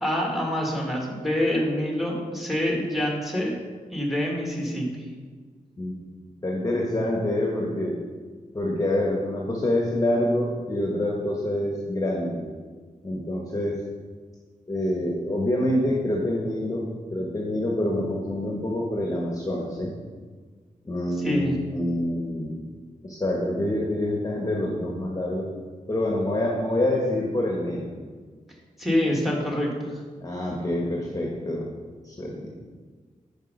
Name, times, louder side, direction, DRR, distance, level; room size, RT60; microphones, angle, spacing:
voice 1, 0.0-3.5 3.9-5.1 21.2-21.6 28.8-30.0, left 1 dB, ahead, -1 dB, 1.7 m, -26 dB
voice 2, 6.4-8.0 8.5-12.4 13.0-13.8 14.7-19.9 20.8-22.6 23.0-25.5 25.9-27.9 30.2-31.7 32.0-32.5, left 1 dB, 25° left, -2 dB, 1.1 m, -26 dB
5.5 x 5.3 x 5.2 m, 1.5 s
cardioid pair, 70°, 14 cm